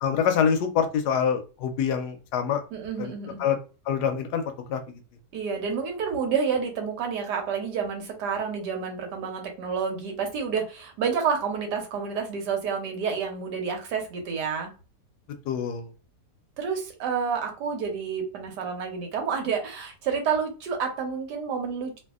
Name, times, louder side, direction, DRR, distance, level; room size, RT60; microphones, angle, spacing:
voice 1, 0.0-2.6 3.0-3.1 3.4-3.6 3.9-4.4 4.7-5.0 15.5-15.9, left 7 dB, 80° left, 7 dB, 1.1 m, -25 dB
voice 2, 2.7-3.4 5.3-14.7 16.6-22.0, right 6 dB, 85° right, 3 dB, 1.3 m, -29 dB
2.7 x 2.6 x 2.3 m, 0.35 s
omnidirectional pair, 1.8 m